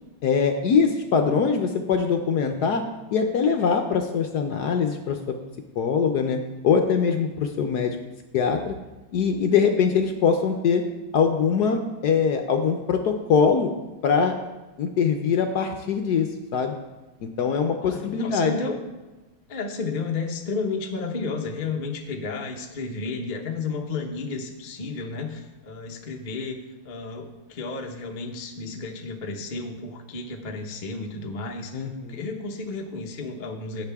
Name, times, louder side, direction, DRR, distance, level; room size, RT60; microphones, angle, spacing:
voice 1, 0.2-2.8 3.1-5.3 5.8-6.4 6.6-8.0 8.3-8.8 9.1-10.8 11.1-13.7 14.0-14.3 14.8-16.7 17.2-18.5 31.7-32.2, left 6 dB, 65° left, 5 dB, 1.0 m, -22 dB
voice 2, 17.8-18.8 19.5-26.6 26.8-33.8, left 4 dB, 45° left, 2 dB, 0.6 m, -32 dB
16.5 x 6.6 x 3.5 m, 1.1 s
omnidirectional pair, 2.3 m